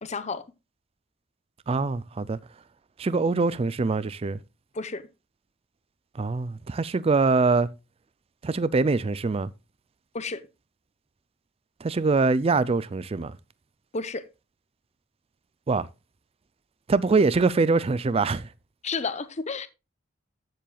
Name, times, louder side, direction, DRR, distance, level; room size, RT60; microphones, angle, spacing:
voice 1, 0.0-0.4 4.7-5.1 10.1-10.4 13.9-14.2 18.8-19.7, left 4 dB, 35° left, 0.8 m, -31 dB
voice 2, 1.7-2.4 3.0-4.4 6.2-7.7 8.4-9.5 11.8-13.4 15.7-15.9 16.9-18.5, right 3 dB, 30° right, 0.4 m, -23 dB
13.5 x 7.6 x 2.3 m
head